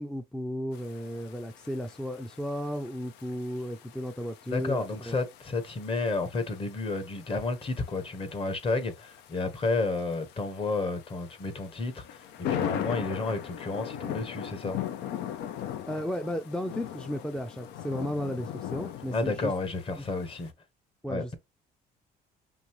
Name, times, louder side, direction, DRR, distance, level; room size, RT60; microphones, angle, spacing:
voice 1, 0.0-5.2 15.9-19.5 20.0-20.1 21.0-21.3, equal, 5° left, 0.4 m, -34 dB
sound 1, 0.7-20.5, left 10 dB, 85° left, 0.6 m, -40 dB
voice 2, 4.5-14.8 19.1-20.5 21.1-21.2, left 3 dB, 30° left, 1.1 m, -31 dB
5.3 x 2.6 x 3.0 m
cardioid pair, 110°, 17 cm